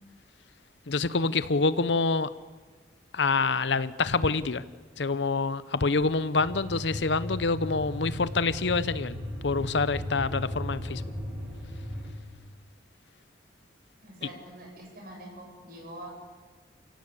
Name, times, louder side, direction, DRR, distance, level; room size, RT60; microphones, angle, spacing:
voice 1, 0.9-2.3 3.1-4.6 5.0-9.2 9.4-11.0, left 3 dB, 75° left, 16 dB, 0.8 m, -26 dB
sound 1, 6.4-12.1, left 1 dB, 10° right, 6.1 m, -36 dB
voice 2, 14.0-16.2, right 1 dB, 50° right, 0 dB, 7.1 m, -44 dB
29.0 x 17.0 x 8.3 m, 1.4 s
head